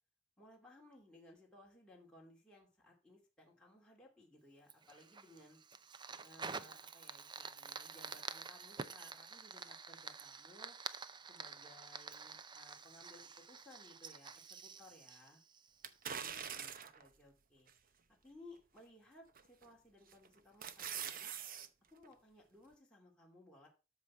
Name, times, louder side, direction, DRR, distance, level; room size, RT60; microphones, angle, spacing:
voice 1, 0.4-5.6 6.2-10.8 11.3-15.4 16.1-17.7 18.2-21.3 21.9-23.7, left 1 dB, 5° left, -3 dB, 2.5 m, -61 dB
Fire, 4.7-16.1, right 5 dB, 25° right, 0.5 m, -49 dB
sound 1, 15.8-17.1 17.7-17.8 19.4-19.7 20.1-21.7 22.0-22.1, right 8 dB, 45° right, 0.8 m, -44 dB
13.0 x 5.9 x 4.7 m, 0.32 s
head